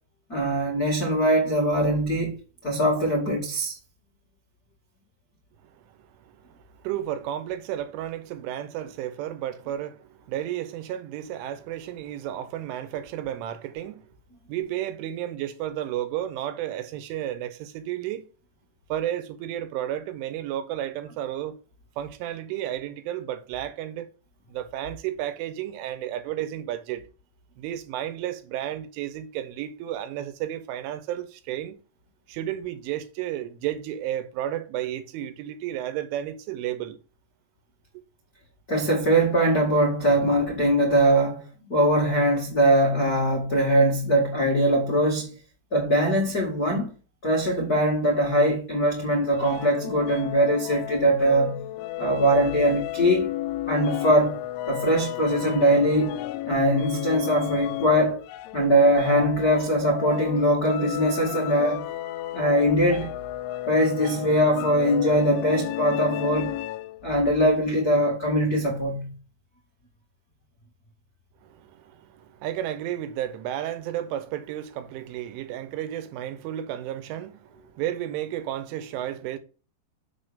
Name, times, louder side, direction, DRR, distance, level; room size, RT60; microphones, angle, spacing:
voice 1, 0.3-2.4 2.6-3.8 38.7-45.3 45.7-46.9 47.2-51.6 52.0-53.3 53.7-54.4 54.7-56.1 56.4-58.2 58.5-61.8 62.3-63.1 63.7-66.5 67.0-69.1, right 1 dB, 60° left, 0.9 m, -22 dB
voice 2, 6.1-14.1 14.5-18.3 18.9-21.6 22.0-24.1 24.5-27.0 27.6-31.8 32.3-37.0 71.4-79.4, right 12 dB, 85° right, 3.4 m, -32 dB
sound 1, 49.4-67.1, left 14 dB, 85° left, 3.0 m, -33 dB
7.0 x 6.7 x 5.1 m
omnidirectional pair, 5.5 m